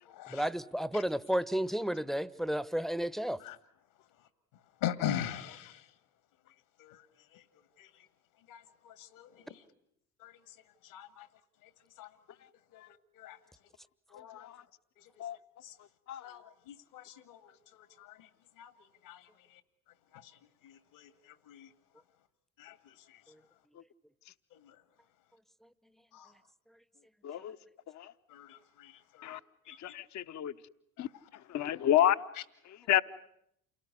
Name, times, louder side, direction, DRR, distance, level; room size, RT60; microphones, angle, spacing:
voice 1, 0.3-3.4 23.3-23.4, equal, ahead, 1.0 m, -32 dB
voice 2, 4.8-5.8 6.8-7.0 7.8-7.9 8.5-9.3 10.2-10.3 10.9-11.3 12.0-12.1 12.7-12.8 13.2-13.4 14.1-14.5 15.6-15.7 16.2-17.4 17.7-18.2 18.6-18.7 19.1-19.2 20.6-21.1 21.5-21.7 22.6-22.7 26.1-26.3 28.3-28.9 29.2-29.3 29.7-29.8, left 11 dB, 65° left, 2.0 m, -40 dB
voice 3, 27.2-27.6 28.0-28.1 29.2-29.4 29.8-30.5 31.0-31.1 31.5-32.2 32.9-33.0, left 12 dB, 40° left, 1.0 m, -28 dB
28.5 x 18.5 x 9.8 m
figure-of-eight pair, 60°, 42 cm